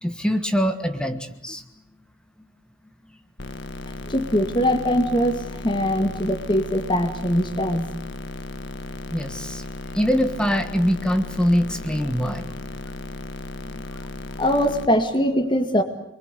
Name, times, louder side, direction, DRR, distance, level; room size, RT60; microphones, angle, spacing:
voice 1, 0.0-1.6 9.1-9.6 9.9-12.7 13.7-13.9, equal, 5° left, 7 dB, 1.4 m, -23 dB
sound 1, 3.4-14.9, left 2 dB, 60° left, 1.6 m, -35 dB
voice 2, 4.1-7.9 14.4-15.8, equal, 25° left, 5 dB, 2.0 m, -22 dB
27.5 x 23.0 x 8.3 m, 0.77 s
head